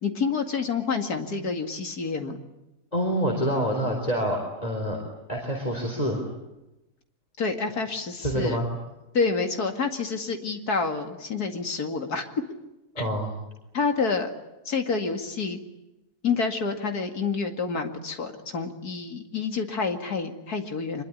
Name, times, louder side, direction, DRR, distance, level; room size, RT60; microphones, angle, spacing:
voice 1, 0.0-2.4 7.4-8.6 9.1-12.3 13.0-13.1 13.7-14.3 14.6-15.6 16.2-21.0, left 4 dB, 75° left, 5 dB, 2.8 m, -28 dB
voice 2, 2.9-5.0 5.3-6.3 8.2-8.7 12.9-13.3, equal, 25° left, 1 dB, 4.3 m, -26 dB
25.5 x 22.0 x 9.9 m, 0.97 s
omnidirectional pair, 1.6 m